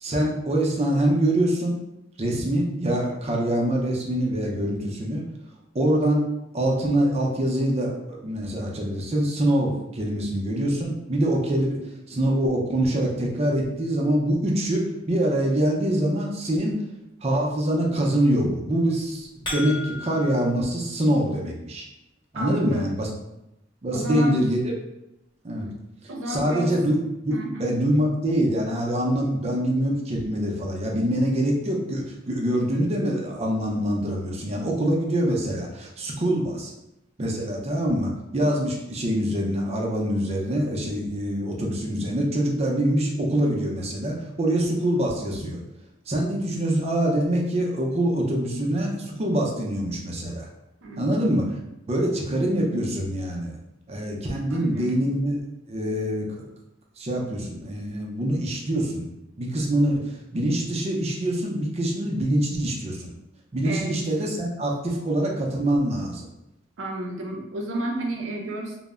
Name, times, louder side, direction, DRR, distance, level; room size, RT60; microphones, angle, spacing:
voice 1, 0.0-1.8 2.2-5.2 5.7-6.2 6.5-11.8 12.1-16.7 17.2-21.9 22.3-23.1 23.8-24.7 25.4-25.7 26.3-27.0 27.2-36.7 37.2-45.6 46.1-50.5 50.9-51.4 51.9-53.5 53.9-55.4 55.7-56.5 57.0-59.1 59.4-63.1 63.5-66.3, right 1 dB, 35° right, -1 dB, 0.5 m, -24 dB
sound 1, 19.0-20.5, left 2 dB, 25° left, 1.0 m, -34 dB
voice 2, 22.3-22.9 23.9-24.4 26.1-26.7 27.3-27.7 50.8-51.3 54.5-55.1 63.6-64.0 66.8-68.8, right 1 dB, 80° right, 0 dB, 0.6 m, -32 dB
2.1 x 2.0 x 3.4 m, 0.88 s
head